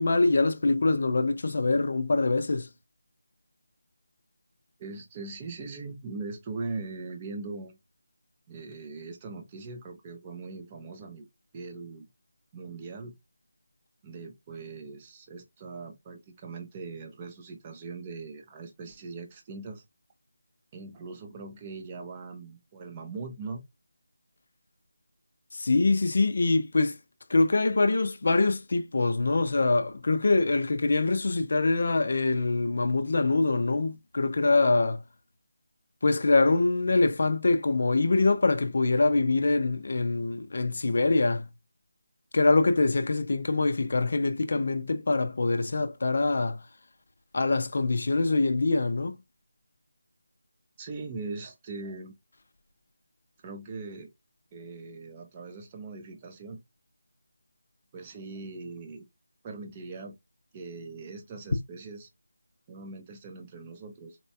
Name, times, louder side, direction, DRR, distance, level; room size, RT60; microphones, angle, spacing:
voice 1, 0.0-2.7 25.5-27.0 27.3-35.0 36.0-41.5 42.3-46.6 47.3-49.2, left 3 dB, 45° left, 0.4 m, -24 dB
voice 2, 4.8-7.8 8.5-11.3 11.5-12.1 12.5-13.1 14.0-19.8 20.7-23.6 50.8-52.1 53.4-54.1 54.5-56.6 57.9-59.0 59.4-60.1 60.5-62.1 62.7-64.2, right 3 dB, 15° right, 0.5 m, -40 dB
4.1 x 2.2 x 2.6 m
figure-of-eight pair, 175°, 0 cm